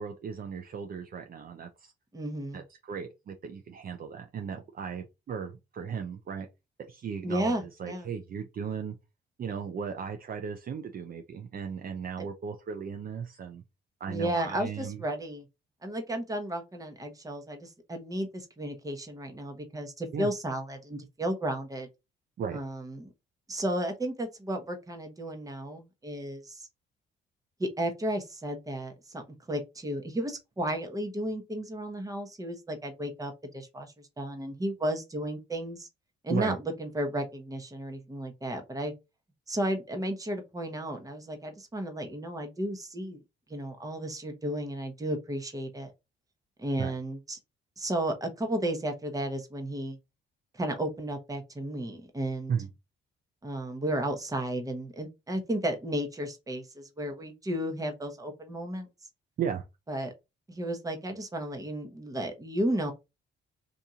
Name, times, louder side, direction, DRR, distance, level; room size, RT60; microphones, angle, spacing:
voice 1, 0.0-1.9 2.5-6.5 6.9-7.5 7.8-8.9 9.4-13.6 14.0-15.0 20.1-20.3 22.4-22.6 36.3-36.6 46.8-46.9 52.5-52.7 59.4-59.6, right 7 dB, 45° right, 0.6 m, -36 dB
voice 2, 2.1-2.6 7.2-8.1 12.2-12.3 14.1-15.5 15.8-21.9 22.5-23.1 23.5-26.7 27.6-35.9 36.2-38.9 39.5-43.2 43.5-45.9 46.6-47.4 47.8-50.0 50.5-52.5 53.4-58.9 59.9-60.1 60.5-62.9, right 1 dB, 15° right, 1.0 m, -33 dB
2.8 x 2.6 x 3.6 m
cardioid pair, 90°, 20 cm